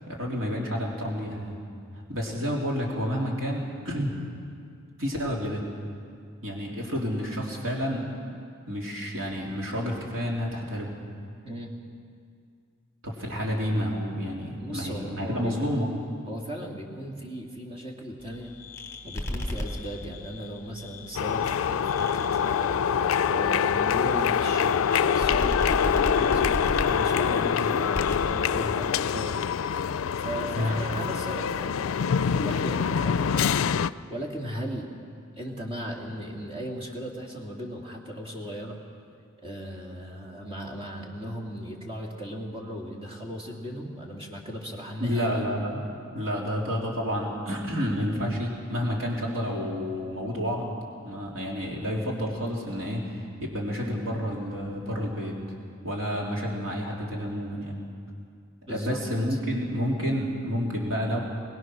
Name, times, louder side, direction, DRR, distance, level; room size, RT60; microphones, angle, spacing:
voice 1, 0.1-1.6 2.1-4.1 5.0-5.6 6.4-8.1 8.7-10.9 13.0-15.9 30.5-30.8 45.0-45.8 46.1-50.7 51.0-55.4 55.8-57.8 58.7-61.2, equal, 75° right, -2 dB, 3.4 m, -29 dB
voice 2, 14.6-15.8 16.3-18.5 19.0-22.8 23.2-29.4 29.7-29.8 30.2-33.7 34.1-34.9 35.4-38.8 39.4-45.5 58.7-59.0 59.3-59.4, equal, 25° right, -1 dB, 2.7 m, -37 dB
sound 1, 18.2-29.5, left 1 dB, 15° left, 2.7 m, -37 dB
sound 2, 21.2-33.9, left 7 dB, 90° left, 0.4 m, -25 dB
22.5 x 19.5 x 6.2 m, 2.3 s
head